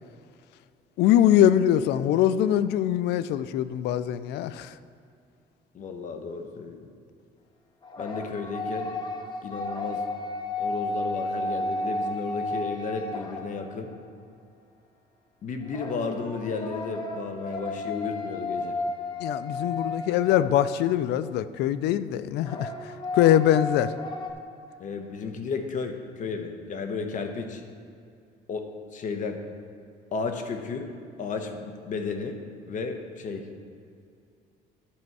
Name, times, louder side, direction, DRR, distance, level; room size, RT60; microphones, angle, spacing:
voice 1, 1.0-4.7 19.2-22.7 23.1-23.9, left 11 dB, 80° left, 14 dB, 0.4 m, -22 dB
voice 2, 5.7-6.9 8.0-8.9 9.4-10.0 10.6-13.9 15.4-18.8 24.8-27.6 28.5-28.7 28.9-29.4 30.1-30.9 31.2-32.4 32.7-33.5, left 4 dB, 50° left, 5 dB, 1.0 m, -33 dB
sound 1, 7.8-13.9 15.7-21.0 22.4-24.3, left 2 dB, 25° left, 0.9 m, -33 dB
11.5 x 5.3 x 4.7 m, 2.4 s
cardioid pair, 110°, 17 cm